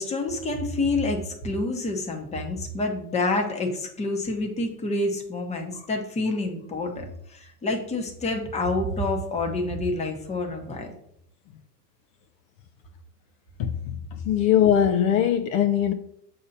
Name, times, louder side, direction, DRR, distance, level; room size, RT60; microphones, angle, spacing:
voice 1, 0.0-10.9, left 2 dB, 15° left, 0.9 m, -28 dB
voice 2, 13.6-15.9, left 9 dB, 60° left, 0.6 m, -21 dB
6.5 x 2.9 x 5.1 m
supercardioid pair, 130°, 48 cm